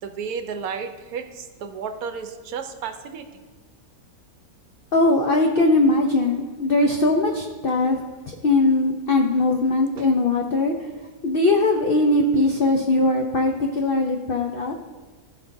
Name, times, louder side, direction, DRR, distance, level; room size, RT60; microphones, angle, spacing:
voice 1, 0.0-3.4 10.0-10.1, right 6 dB, 70° right, 8 dB, 1.1 m, -33 dB
voice 2, 4.9-10.9 11.2-14.7, left 2 dB, 85° left, 2 dB, 0.5 m, -20 dB
14.5 x 5.9 x 2.6 m, 1.4 s
omnidirectional pair, 1.7 m